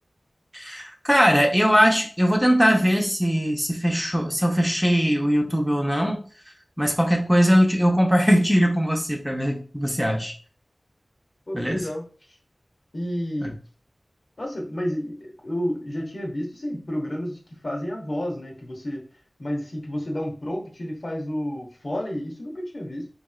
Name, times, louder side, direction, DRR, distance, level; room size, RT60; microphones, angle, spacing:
voice 1, 0.5-6.2 6.8-10.3 11.5-11.8 13.4-13.5, equal, ahead, 0 dB, 0.8 m, -20 dB
voice 2, 11.5-12.0 12.9-13.6 14.4-19.0 19.4-23.1, equal, 60° left, -1 dB, 1.1 m, -30 dB
3.4 x 3.0 x 2.4 m, 0.40 s
wide cardioid pair, 45°, 0 cm